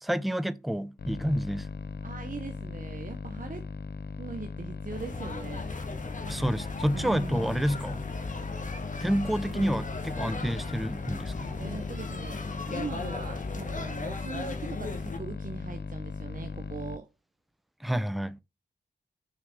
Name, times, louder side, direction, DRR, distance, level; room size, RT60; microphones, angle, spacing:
voice 1, 0.0-1.7 6.3-8.1 9.0-11.5 17.8-18.4, equal, ahead, 0.5 m, -29 dB
sound 1, 1.0-17.0, left 4 dB, 65° left, 0.7 m, -38 dB
voice 2, 2.0-3.7 4.2-5.7 6.9-7.7 11.6-17.1, right 4 dB, 50° right, 0.9 m, -40 dB
sound 2, 4.9-15.2, left 3 dB, 45° left, 1.3 m, -38 dB
6.6 x 5.9 x 3.6 m
cardioid pair, 65°, 18 cm